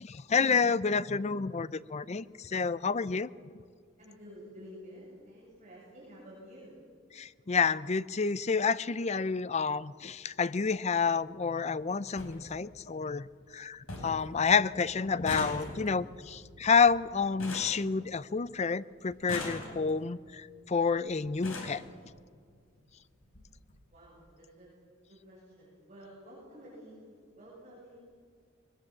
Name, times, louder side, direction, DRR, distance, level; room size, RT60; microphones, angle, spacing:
voice 1, 0.0-3.3 7.2-13.3 13.5-21.8, left 5 dB, 30° left, 17 dB, 0.5 m, -29 dB
voice 2, 4.0-6.8 23.9-24.7 25.1-28.0, equal, 35° right, -7 dB, 7.5 m, -51 dB
sound 1, 10.2-10.3 11.5-11.6 11.8-11.9 12.2-12.4 12.8-13.3 13.6-13.7 13.9-14.3 14.5-18.5 19.1-20.1 20.9-21.0 21.3-21.8 22.8-22.9 23.2-23.4 23.7-23.8, left 2 dB, 75° left, 5.2 m, -41 dB
21.0 x 20.0 x 7.7 m, 2.1 s
head